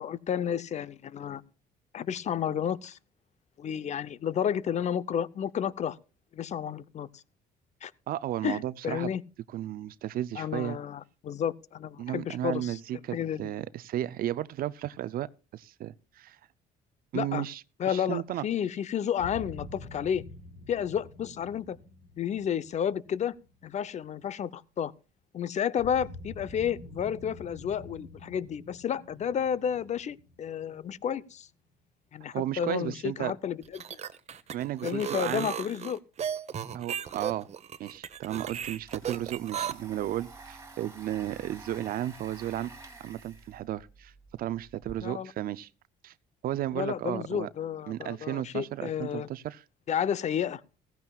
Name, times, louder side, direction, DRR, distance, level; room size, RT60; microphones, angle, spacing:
voice 1, 0.0-1.4 1.9-3.0 3.6-6.0 6.3-7.2 7.8-7.9 8.4-9.2 10.4-12.8 13.1-13.5 17.1-17.5 17.8-20.2 20.7-21.8 22.2-23.4 23.6-24.9 25.3-31.5 32.1-33.8 34.8-36.0 45.0-45.3 46.7-49.3 49.9-50.6, left 8 dB, 45° left, 0.7 m, -31 dB
voice 2, 8.1-9.1 9.5-10.8 12.0-16.4 17.1-18.4 32.3-33.3 34.5-35.5 36.7-37.5 37.8-42.7 43.0-44.1 44.4-45.7 46.0-46.1 46.4-47.5 47.9-49.6, right 12 dB, 60° right, 0.5 m, -34 dB
sound 1, 19.2-24.1 25.8-31.4, left 2 dB, 85° left, 6.0 m, -47 dB
sound 2, 33.6-39.7, right 8 dB, 40° right, 1.0 m, -35 dB
Domestic sounds home sounds, 37.9-38.0 38.3-44.9, right 3 dB, 15° right, 2.7 m, -49 dB
16.0 x 15.5 x 2.3 m
cardioid pair, 110°, 17 cm